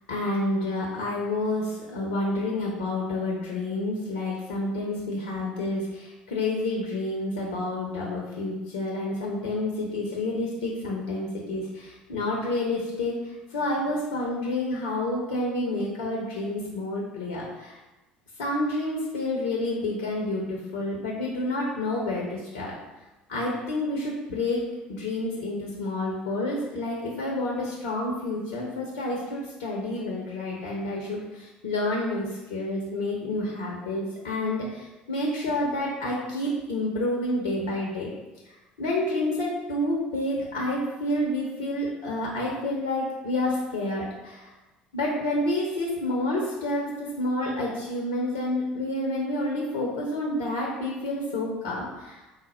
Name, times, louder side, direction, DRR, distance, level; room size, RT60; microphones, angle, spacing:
voice 1, 0.1-13.1 13.5-17.8 18.4-22.7 23.3-24.6 24.9-38.1 38.8-44.5 44.9-52.2, left 1 dB, 65° left, -2 dB, 0.6 m, -29 dB
4.1 x 2.0 x 4.1 m, 1.1 s
figure-of-eight pair, 60°, 5 cm